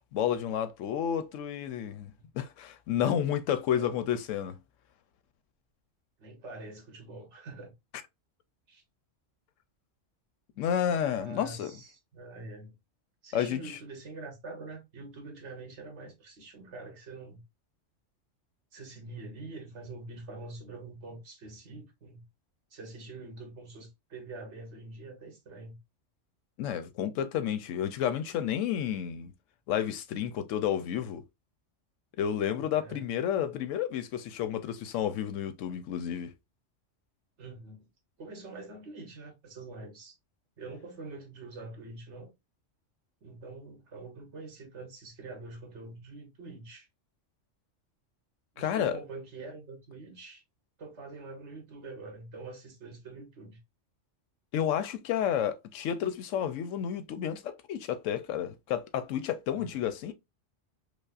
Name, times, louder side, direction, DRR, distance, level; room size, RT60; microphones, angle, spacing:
voice 1, 0.1-4.6 10.6-11.7 13.3-13.8 26.6-29.3 29.7-31.2 32.2-36.3 48.6-49.0 54.5-60.1, left 9 dB, 85° left, 0.9 m, -31 dB
voice 2, 6.2-7.7 8.7-8.8 11.2-12.7 13.2-17.4 18.7-22.2 22.7-25.8 32.5-33.0 37.4-37.9 38.2-40.1 40.6-42.3 43.2-46.9 48.5-50.4 50.8-53.6 59.5-59.8, right 3 dB, 70° right, 1.4 m, -45 dB
5.2 x 2.0 x 2.4 m
omnidirectional pair, 1.3 m